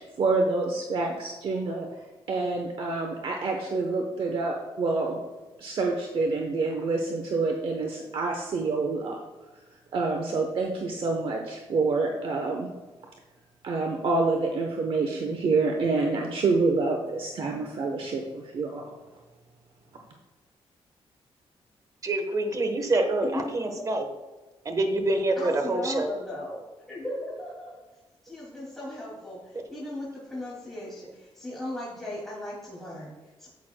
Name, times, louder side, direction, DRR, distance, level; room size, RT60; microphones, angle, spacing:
voice 1, 0.0-1.9 2.3-5.2 5.6-9.2 9.9-12.7 13.6-18.9, right 3 dB, 55° right, 2 dB, 0.9 m, -27 dB
voice 2, 22.0-24.0 24.6-26.1, right 2 dB, 35° right, 6 dB, 1.2 m, -26 dB
voice 3, 23.2-23.8 25.4-26.6 26.9-27.8 28.2-33.5, left 1 dB, ahead, -7 dB, 2.5 m, -37 dB
10.5 x 8.3 x 2.2 m, 1.2 s
cardioid pair, 115°, 11 cm